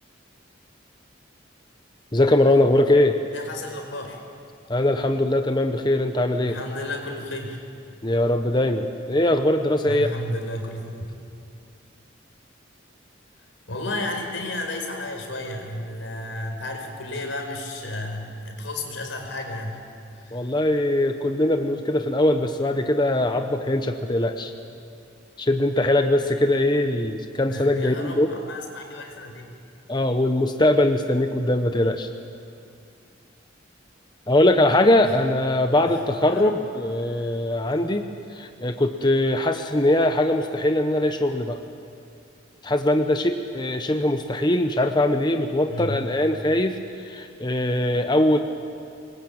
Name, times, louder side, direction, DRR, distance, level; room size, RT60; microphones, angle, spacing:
voice 1, 2.1-3.2 4.7-6.6 8.0-10.1 20.3-24.5 25.4-28.3 29.9-32.1 34.3-38.0 38.3-41.6 42.6-48.4, left 1 dB, 25° left, 6 dB, 1.0 m, -21 dB
voice 2, 3.3-4.2 6.4-7.6 9.8-10.8 13.7-19.8 20.1-20.5 27.5-29.6 35.0-35.2 35.8-36.6 37.0-37.3 37.7-37.8 45.7-46.1, left 1 dB, 85° left, 3 dB, 4.7 m, -33 dB
26.0 x 22.0 x 8.7 m, 2.4 s
head